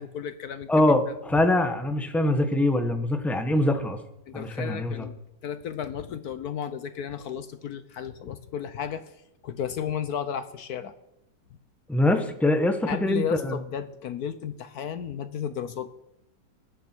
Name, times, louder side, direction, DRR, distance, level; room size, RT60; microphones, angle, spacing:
voice 1, 0.0-1.1 4.3-5.2 5.4-9.2 9.4-10.9 12.9-15.9, left 8 dB, 65° left, 12 dB, 1.0 m, -34 dB
voice 2, 0.7-4.0 4.3-5.1 11.9-13.5, left 1 dB, ahead, 6 dB, 0.5 m, -23 dB
20.5 x 9.4 x 4.5 m, 0.85 s
omnidirectional pair, 2.1 m